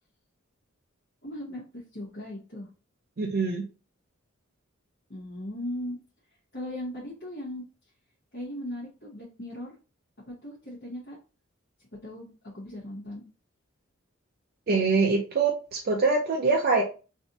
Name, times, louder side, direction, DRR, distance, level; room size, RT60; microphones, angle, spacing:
voice 1, 1.2-2.7 5.1-6.0 6.5-7.6 8.3-9.7 10.3-11.2 12.0-13.2, left 1 dB, 55° left, -9 dB, 1.3 m, -38 dB
voice 2, 3.2-3.6 14.7-16.8, right 4 dB, 50° right, 0 dB, 0.5 m, -24 dB
3.2 x 2.7 x 2.6 m, 0.33 s
head